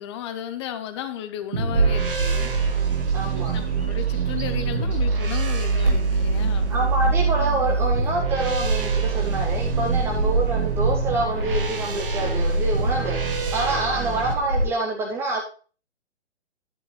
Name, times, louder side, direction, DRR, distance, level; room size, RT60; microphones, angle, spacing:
voice 1, 0.0-2.5 3.5-6.8 13.9-14.3, left 10 dB, 25° left, 9 dB, 0.9 m, -34 dB
sound 1, 1.5-14.3, right 5 dB, 50° right, 1.8 m, -25 dB
Bird vocalization bird call bird song, 1.7-14.6, right 1 dB, 75° right, 4.8 m, -28 dB
voice 2, 3.1-3.6 6.7-15.4, right 2 dB, 5° right, 0 dB, 0.6 m, -27 dB
11.0 x 9.9 x 3.2 m, 0.38 s
figure-of-eight pair, 130°, 34 cm